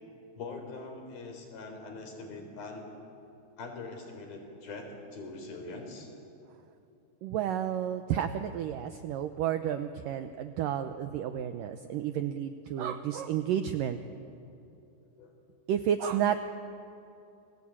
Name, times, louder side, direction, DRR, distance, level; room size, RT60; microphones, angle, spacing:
voice 1, 0.4-2.9 3.6-6.1 15.2-15.3, left 3 dB, 60° left, 4 dB, 5.6 m, -42 dB
voice 2, 7.2-14.0 15.7-16.4, right 10 dB, 80° right, 8 dB, 2.0 m, -31 dB
30.0 x 22.0 x 8.8 m, 2.8 s
omnidirectional pair, 4.9 m